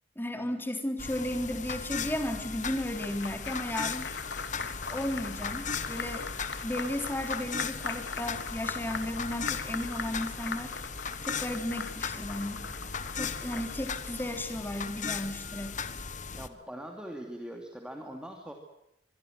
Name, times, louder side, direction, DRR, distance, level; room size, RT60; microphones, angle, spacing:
voice 1, 0.2-4.1 4.9-6.3 6.6-10.7 11.2-12.6 13.1-15.8, left 1 dB, 10° left, 6 dB, 3.7 m, -34 dB
sound 1, 1.0-16.5, left 5 dB, 45° left, 1.5 m, -38 dB
Applause, 2.4-14.1, left 4 dB, 70° left, 2.9 m, -40 dB
voice 2, 16.3-18.5, equal, 5° right, 2 dB, 2.8 m, -42 dB
25.5 x 23.0 x 7.8 m, 0.81 s
head